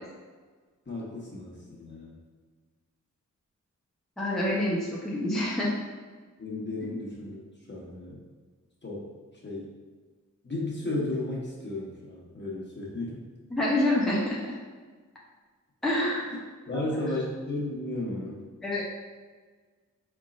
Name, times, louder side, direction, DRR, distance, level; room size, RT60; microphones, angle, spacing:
voice 1, 0.9-2.2 6.4-7.4 7.7-8.2 8.8-9.1 9.4-9.7 10.4-13.3 15.8-16.4 16.7-18.4, left 2 dB, 35° left, -5 dB, 1.1 m, -34 dB
voice 2, 4.2-5.7 13.5-14.4 15.8-16.2 18.6-18.8, left 1 dB, ahead, -6 dB, 0.8 m, -26 dB
5.0 x 3.6 x 2.5 m, 1.5 s
wide cardioid pair, 110°, 31 cm